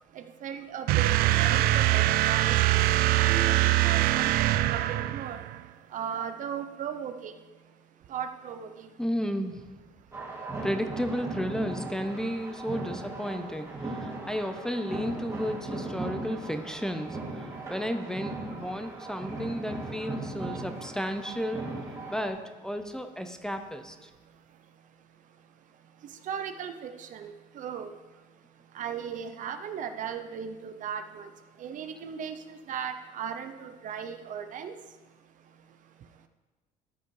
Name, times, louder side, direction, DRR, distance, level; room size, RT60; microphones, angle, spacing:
voice 1, 0.2-1.1 1.4-2.8 3.1-5.4 5.9-7.3 8.1-8.9 26.3-27.9 28.7-31.3 31.6-34.7, right 8 dB, 55° right, 8 dB, 0.8 m, -37 dB
sound 1, 0.9-5.6, right 15 dB, 75° right, 0.4 m, -23 dB
voice 2, 9.0-9.7 10.6-17.4 17.7-21.6 22.1-24.1, equal, 5° left, 7 dB, 0.7 m, -33 dB
sound 2, 10.1-22.3, right 2 dB, 20° right, 2.6 m, -38 dB
13.0 x 5.6 x 4.7 m, 1.2 s
cardioid pair, 110°, 16 cm